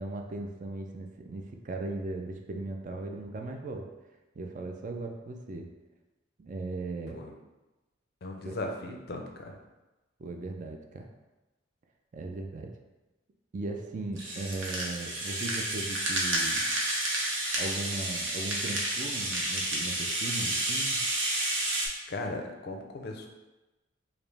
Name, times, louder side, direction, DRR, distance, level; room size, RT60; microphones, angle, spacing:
voice 1, 0.0-3.9 4.4-5.7 6.4-7.2 8.4-8.5 10.2-11.1 12.1-12.7 13.5-16.7 17.6-21.0, right 2 dB, 40° right, 3 dB, 0.3 m, -37 dB
voice 2, 8.2-9.6 21.6-21.8 22.1-23.3, left 2 dB, 50° left, 2 dB, 0.5 m, -37 dB
Rattle (instrument), 14.2-21.9, right 1 dB, 75° right, 0.8 m, -30 dB
5.0 x 2.0 x 3.3 m, 1.1 s
head